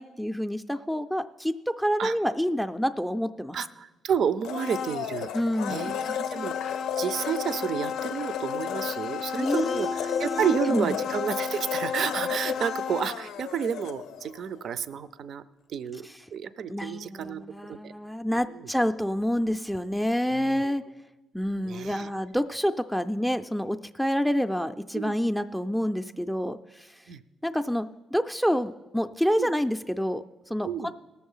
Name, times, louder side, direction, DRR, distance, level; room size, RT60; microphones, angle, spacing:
voice 1, 0.0-3.6 5.3-6.0 9.4-10.9 16.7-20.8 21.3-26.9 27.4-30.9, equal, ahead, 8 dB, 0.4 m, -28 dB
voice 2, 3.5-5.3 5.7-15.4 15.7-16.1 16.3-17.9 18.5-18.7 20.3-20.7 21.7-22.1 24.9-25.2 27.1-27.2 29.4-29.5 30.6-30.9, right 8 dB, 65° right, 15 dB, 0.4 m, -31 dB
Domestic sounds home sounds, 4.4-14.4 14.7-14.8, left 8 dB, 85° left, 0.5 m, -32 dB
18.0 x 7.1 x 5.5 m, 1.1 s
cardioid pair, 90°, 0 cm